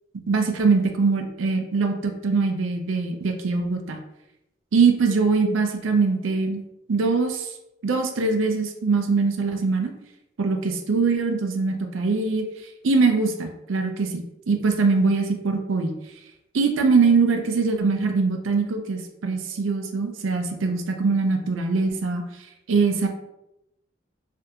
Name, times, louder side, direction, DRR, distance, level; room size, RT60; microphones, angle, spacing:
voice 1, 0.3-4.0 4.7-6.6 6.9-7.5 7.8-9.9 10.4-12.4 12.8-15.9 16.5-22.2 22.7-23.1, right 4 dB, 80° right, 5 dB, 0.5 m, -22 dB
3.3 x 2.5 x 2.8 m, 0.88 s
head